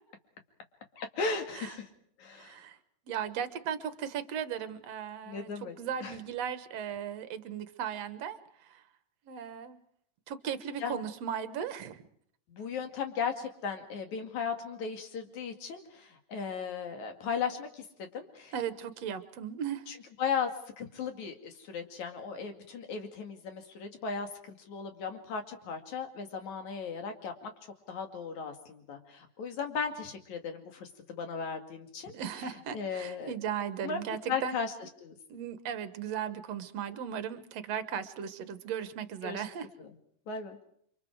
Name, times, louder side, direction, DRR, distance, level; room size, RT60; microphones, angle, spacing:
voice 1, 0.9-1.9 2.2-2.6 5.3-6.2 10.8-11.0 12.5-18.5 19.9-20.5 20.8-27.5 27.9-32.1 32.7-33.3 33.8-34.7 35.0-35.2 39.2-39.4 39.8-39.9 40.3-40.6, left 6 dB, 65° left, 5 dB, 3.5 m, -36 dB
voice 2, 2.3-2.8 3.1-8.8 9.3-9.8 10.3-12.0 18.5-19.9 32.1-34.6 35.3-39.7, right 8 dB, 60° right, 11 dB, 2.2 m, -37 dB
29.5 x 25.0 x 4.7 m, 0.64 s
omnidirectional pair, 3.6 m